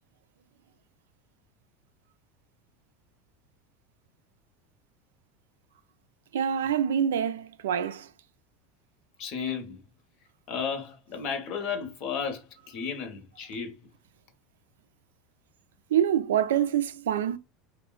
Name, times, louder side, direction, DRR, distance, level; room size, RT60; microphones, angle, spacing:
voice 1, 6.3-8.1 15.9-17.4, right 9 dB, 80° right, 0.3 m, -26 dB
voice 2, 9.2-9.8 10.5-13.8, left 6 dB, 60° left, 0.8 m, -33 dB
3.1 x 2.1 x 2.3 m
hypercardioid pair, 80°, 0 cm